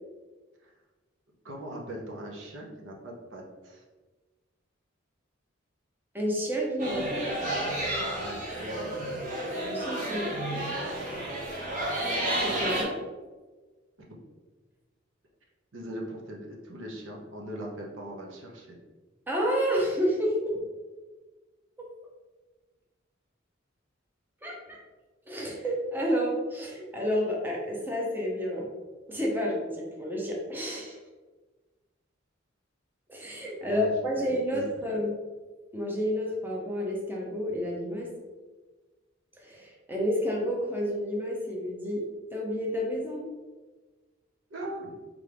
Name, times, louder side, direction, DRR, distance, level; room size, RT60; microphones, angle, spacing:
voice 1, 1.4-3.8 8.1-9.2 15.7-18.8 33.7-34.3 34.5-34.7 44.5-44.9, right 1 dB, 70° right, -1 dB, 0.8 m, -40 dB
voice 2, 6.1-7.3 9.6-10.7 12.2-13.0 19.3-20.5 24.4-24.8 25.3-28.7 29.1-31.0 33.1-35.2 35.7-38.1 39.4-42.1 42.3-43.2, equal, 10° right, -2 dB, 0.7 m, -30 dB
sound 1, 6.8-12.8, right 1 dB, 40° right, 1.0 m, -31 dB
3.8 x 3.4 x 3.3 m, 1.3 s
head